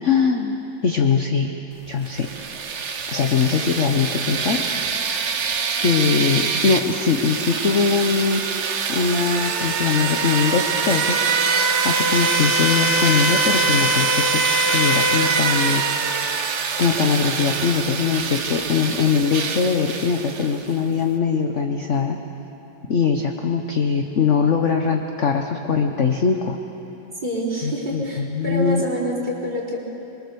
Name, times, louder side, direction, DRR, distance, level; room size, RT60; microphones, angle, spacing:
voice 1, 0.0-1.5 1.9-2.3 3.1-4.6 5.8-8.4 8.9-11.2 11.8-16.2 16.8-22.2 22.9-26.6 27.6-28.8, left 5 dB, 45° left, 3 dB, 1.1 m, -21 dB
sound 1, 2.1-20.7, right 4 dB, 45° right, 1.1 m, -23 dB
voice 2, 27.2-29.8, equal, 25° right, -3 dB, 4.2 m, -27 dB
26.0 x 23.0 x 6.9 m, 3.0 s
omnidirectional pair, 2.0 m